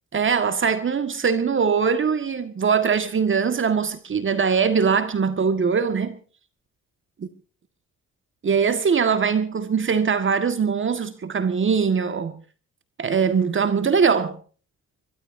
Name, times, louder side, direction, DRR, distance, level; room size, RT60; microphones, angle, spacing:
voice 1, 0.1-6.2 7.2-7.3 8.4-12.4 13.0-14.4, right 6 dB, 40° right, 1.8 m, -21 dB
23.0 x 22.5 x 2.7 m
cardioid pair, 90°, 30 cm